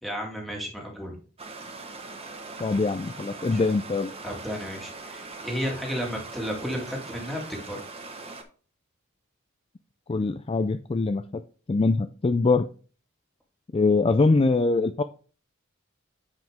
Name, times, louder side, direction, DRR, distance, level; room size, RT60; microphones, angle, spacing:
voice 1, 0.0-1.2 3.5-3.6 4.2-7.8, equal, ahead, -1 dB, 2.0 m, -33 dB
Stream, 1.4-8.4, right 3 dB, 30° right, 1.2 m, -41 dB
voice 2, 2.6-4.1 10.1-11.4 11.7-12.7 13.7-15.0, left 3 dB, 25° left, 8 dB, 0.3 m, -23 dB
9.2 x 5.1 x 3.5 m, 0.38 s
head